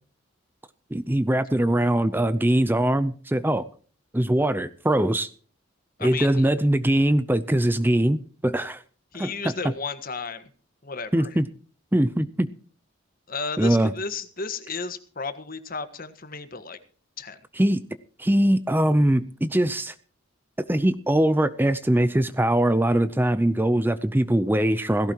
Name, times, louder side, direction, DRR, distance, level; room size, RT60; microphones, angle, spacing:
voice 1, 0.9-3.7 4.1-5.3 6.0-8.8 9.2-9.5 11.1-11.5 11.9-12.5 13.6-13.9 17.6-17.8 18.2-19.9 20.7-25.1, right 1 dB, 10° right, 12 dB, 0.6 m, -22 dB
voice 2, 6.0-6.5 9.1-10.5 10.8-11.4 13.3-16.8 17.2-17.4, left 4 dB, 45° left, 10 dB, 1.5 m, -33 dB
17.5 x 16.5 x 3.0 m, 0.42 s
head